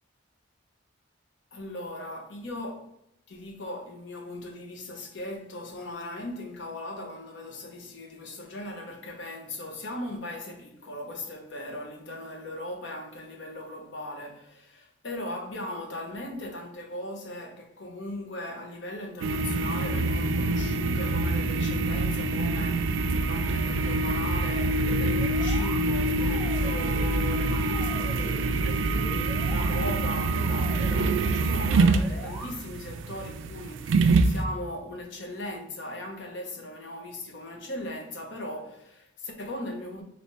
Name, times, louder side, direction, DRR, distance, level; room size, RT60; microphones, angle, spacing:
voice 1, 1.5-2.9 3.3-28.8 29.5-40.0, left 1 dB, 65° left, 0.8 m, -38 dB
sound 1, 19.2-34.4, right 3 dB, 75° right, 0.3 m, -25 dB
sound 2, 24.7-25.8 26.2-27.1 27.4-28.4 28.9-29.7 30.1-31.1 31.7-32.5, equal, ahead, 0.8 m, -43 dB
3.3 x 2.7 x 4.1 m
head